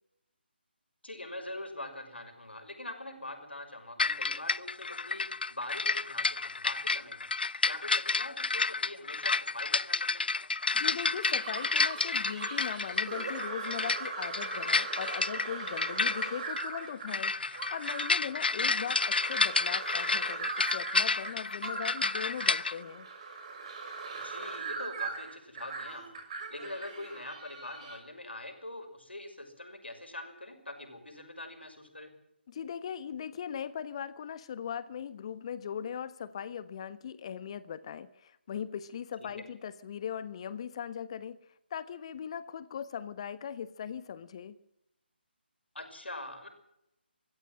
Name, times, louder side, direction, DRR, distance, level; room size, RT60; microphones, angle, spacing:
voice 1, 1.0-7.2 7.6-10.2 24.2-32.1 39.2-39.3 45.7-46.5, left 1 dB, 75° left, 7 dB, 6.0 m, -43 dB
sound 1, 4.0-22.7, left 4 dB, 60° left, 0.7 m, -30 dB
voice 2, 10.7-17.3 17.7-23.1 32.5-41.4 41.7-44.5, left 8 dB, 30° left, 14 dB, 1.2 m, -39 dB
sound 2, 11.0-28.0, right 4 dB, 35° right, 5.9 m, -40 dB
23.5 x 15.0 x 7.6 m, 0.83 s
figure-of-eight pair, 150°, 6 cm